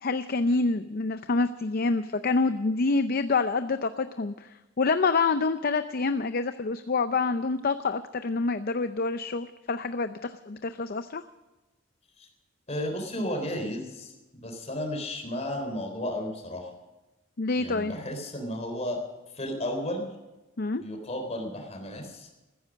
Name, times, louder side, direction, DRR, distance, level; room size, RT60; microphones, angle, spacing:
voice 1, 0.0-4.5 4.8-11.2 17.4-17.9 20.6-20.8, left 3 dB, 50° left, 10 dB, 0.6 m, -27 dB
voice 2, 12.7-16.7 17.6-19.0 19.3-20.1 20.8-22.3, left 1 dB, 35° left, 4 dB, 3.8 m, -33 dB
15.0 x 14.5 x 6.4 m, 1.1 s
head